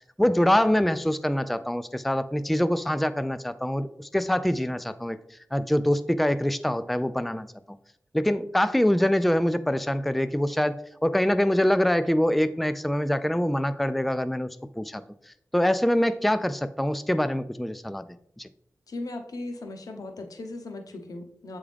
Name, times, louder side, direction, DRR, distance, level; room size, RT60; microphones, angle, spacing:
voice 1, 0.2-5.2 5.5-7.5 8.1-15.0 15.5-18.0 18.4-18.5, equal, ahead, 12 dB, 0.3 m, -24 dB
voice 2, 18.9-21.6, left 2 dB, 85° left, 5 dB, 0.8 m, -37 dB
8.0 x 3.6 x 3.4 m, 0.73 s
wide cardioid pair, 65°, 6 cm